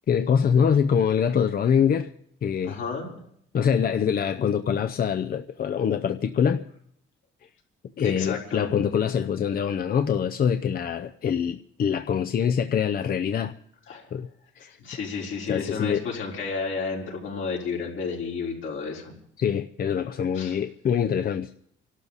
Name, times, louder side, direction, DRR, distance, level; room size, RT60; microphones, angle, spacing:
voice 1, 0.1-2.1 2.4-2.8 3.5-6.7 8.0-13.5 14.1-14.3 14.6-14.7 15.5-16.0 19.4-21.5, left 7 dB, 50° left, 0.6 m, -24 dB
voice 2, 2.6-3.2 8.0-8.7 13.9-14.1 14.8-19.1 20.3-20.6, left 5 dB, 75° left, 4.3 m, -32 dB
27.5 x 12.5 x 4.1 m
cardioid pair, 90°, 20 cm